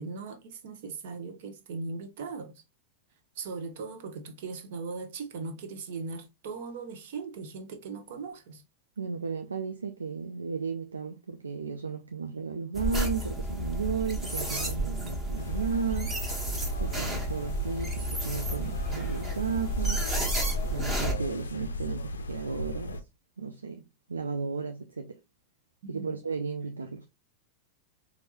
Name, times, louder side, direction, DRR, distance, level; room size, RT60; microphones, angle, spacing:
voice 1, 0.0-2.6 3.4-8.6 25.8-26.1, right 4 dB, 55° right, 0.8 m, -39 dB
voice 2, 9.0-16.2 16.8-20.1 20.6-23.0 23.4-23.8 24.1-25.2 25.9-27.1, right 5 dB, 75° right, 0.4 m, -34 dB
sound 1, 12.7-21.1, right 1 dB, 15° right, 1.3 m, -32 dB
sound 2, 15.4-23.0, left 1 dB, 70° left, 0.4 m, -37 dB
4.4 x 2.7 x 2.9 m
figure-of-eight pair, 90°, 0 cm